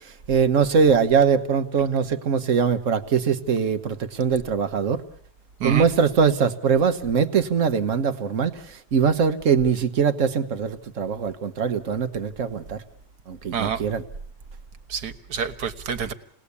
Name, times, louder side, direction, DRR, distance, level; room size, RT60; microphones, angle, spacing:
voice 1, 0.3-5.0 5.6-12.8 13.3-14.0, right 6 dB, 50° right, 10 dB, 1.5 m, -22 dB
voice 2, 14.9-16.1, right 7 dB, 75° right, 10 dB, 1.9 m, -27 dB
28.5 x 19.5 x 8.4 m, 0.65 s
omnidirectional pair, 1.7 m